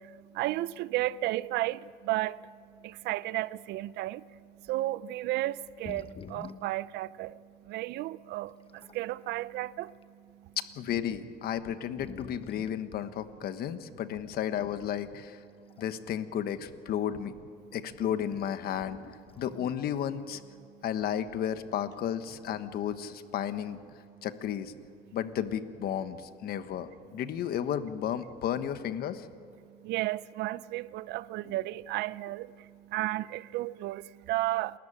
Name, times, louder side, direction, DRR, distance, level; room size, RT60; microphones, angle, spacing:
voice 1, 0.0-10.6 15.5-15.8 17.6-17.8 20.6-20.8 24.1-24.3 25.0-25.2 29.6-34.8, right 16 dB, 85° right, 0.5 m, -34 dB
sound 1, 4.6-4.8 5.7-6.8 7.6-7.7 8.4-9.1 9.8-10.0 10.9-11.0 11.6-12.9 14.5-14.7 15.5-16.2 16.5-16.6 19.0-19.9 22.0-22.5, left 6 dB, 35° left, 1.0 m, -48 dB
voice 2, 10.6-15.4 15.8-17.3 17.7-19.0 19.4-20.4 20.8-23.8 24.2-24.7 25.1-29.3, left 9 dB, 65° left, 1.3 m, -33 dB
28.5 x 13.5 x 8.9 m
cardioid pair, 110°, 17 cm